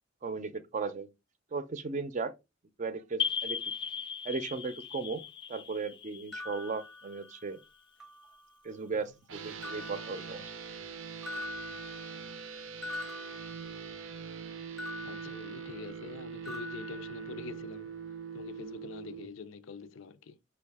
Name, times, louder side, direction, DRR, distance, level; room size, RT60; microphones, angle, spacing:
voice 1, 0.2-1.1 1.5-2.3 2.8-3.6 4.2-5.2 5.5-7.6 8.6-10.5, right 4 dB, 40° right, 0.5 m, -36 dB
sound 1, 3.2-7.6, left 7 dB, 25° left, 0.3 m, -37 dB
sound 2, 6.3-7.6 8.0-8.8 9.6-10.9 11.2-14.2 14.8-16.2 16.4-17.8, left 2 dB, ahead, 0.7 m, -45 dB
sound 3, 9.3-19.3, right 6 dB, 85° right, 0.5 m, -43 dB
voice 2, 15.0-17.9 18.3-20.4, left 5 dB, 90° left, 0.5 m, -45 dB
5.3 x 2.3 x 3.5 m
head